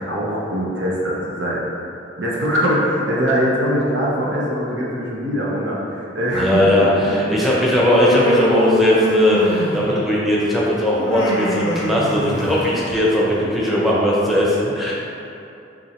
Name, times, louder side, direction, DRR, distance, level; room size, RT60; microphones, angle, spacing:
voice 1, 0.0-1.6 2.2-7.4 13.2-13.3, equal, 75° right, -5 dB, 0.9 m, -22 dB
voice 2, 6.3-14.9, equal, ahead, -6 dB, 0.7 m, -18 dB
Human voice, 7.8-10.0 10.9-12.8, left 1 dB, 85° left, 0.6 m, -21 dB
5.9 x 2.7 x 3.0 m, 2.7 s
head